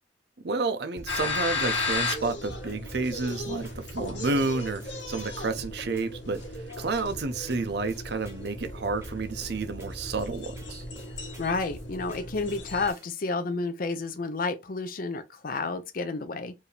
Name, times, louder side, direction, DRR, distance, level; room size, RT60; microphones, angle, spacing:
voice 1, 0.4-10.8, right 3 dB, 60° right, 0.6 m, -30 dB
sound 1, 1.0-13.2, right 1 dB, 15° right, 1.0 m, -49 dB
sound 2, 1.1-12.9, left 2 dB, 80° left, 1.8 m, -35 dB
voice 2, 11.4-16.5, left 3 dB, 50° left, 0.5 m, -30 dB
4.6 x 2.7 x 3.2 m
head